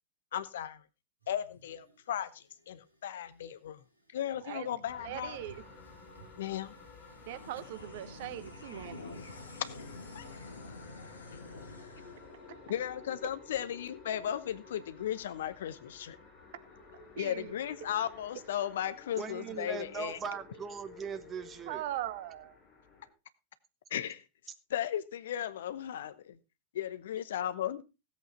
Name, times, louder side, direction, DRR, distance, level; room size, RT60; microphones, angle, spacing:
voice 1, 0.3-0.8 1.3-3.8 4.1-5.4 6.4-6.7 9.7-11.4 12.7-16.2 17.2-20.2 23.9-24.2 24.7-26.4 26.7-27.8, left 10 dB, 60° left, 0.9 m, -36 dB
sound 1, 1.2-12.2, right 2 dB, 80° right, 2.8 m, -61 dB
sound 2, 4.8-23.1, left 3 dB, 40° left, 7.7 m, -53 dB
voice 2, 5.0-5.6 7.3-9.1 17.2-17.5 21.7-22.6, right 13 dB, 50° right, 1.1 m, -40 dB
sound 3, 7.2-13.9, left 3 dB, 75° left, 1.9 m, -49 dB
voice 3, 19.2-21.8, right 5 dB, 25° right, 1.4 m, -39 dB
16.5 x 8.3 x 4.2 m
figure-of-eight pair, 90°, 0 cm